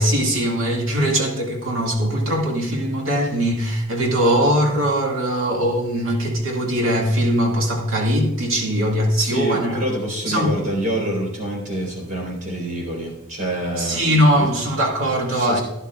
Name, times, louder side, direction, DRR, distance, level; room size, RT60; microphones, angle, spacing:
voice 1, 0.0-9.8 10.2-10.7 13.8-15.6, equal, 80° right, 2.1 m, -21 dB
voice 2, 9.2-14.5 15.3-15.6, right 1 dB, 40° right, 3.8 m, -27 dB
12.0 x 11.0 x 2.4 m
head